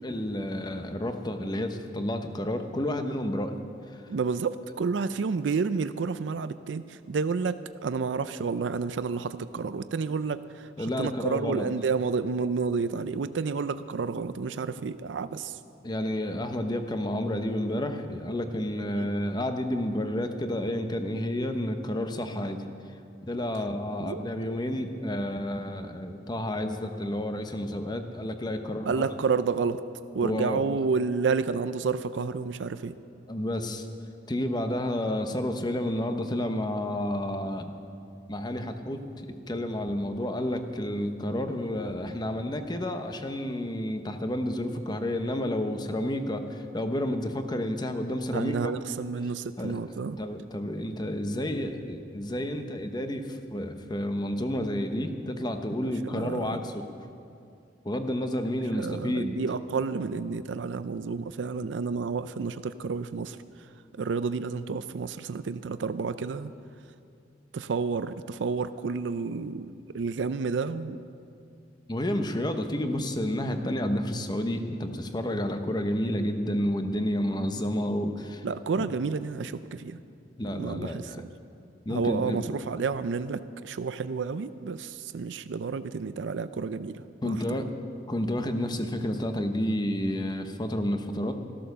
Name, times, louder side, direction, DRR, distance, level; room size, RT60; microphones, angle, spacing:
voice 1, 0.0-3.5 3.9-4.0 10.8-11.7 15.8-22.6 23.3-29.0 30.2-30.6 33.3-33.9 34.3-37.7 38.3-39.0 39.5-48.7 49.6-56.9 57.8-59.4 71.9-78.4 78.8-78.9 80.4-81.2 81.9-82.4 87.2-87.6 88.1-91.3, left 1 dB, 25° left, 7 dB, 0.9 m, -30 dB
voice 2, 4.1-15.6 18.9-19.1 24.0-24.2 28.9-29.8 30.1-32.9 48.3-50.2 56.0-56.6 58.7-63.4 63.9-66.5 67.5-71.0 78.4-80.0 80.5-81.3 81.9-87.4, right 5 dB, 85° right, 13 dB, 0.4 m, -30 dB
13.5 x 12.5 x 6.7 m, 2.5 s
head